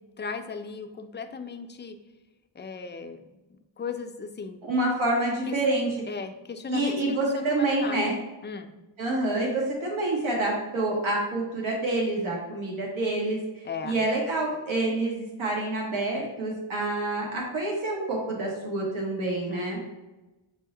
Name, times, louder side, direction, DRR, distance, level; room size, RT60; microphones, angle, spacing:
voice 1, 0.2-2.0 2.5-3.4 3.8-4.6 5.5-5.6 6.0-8.1 8.4-8.7 13.6-14.0 19.5-19.8, left 5 dB, 25° left, 7 dB, 0.4 m, -36 dB
voice 2, 4.6-5.9 6.7-8.2 9.0-13.4 13.8-19.8, right 2 dB, 90° right, -3 dB, 1.1 m, -27 dB
5.5 x 2.1 x 3.7 m, 1.1 s
cardioid pair, 55°, 47 cm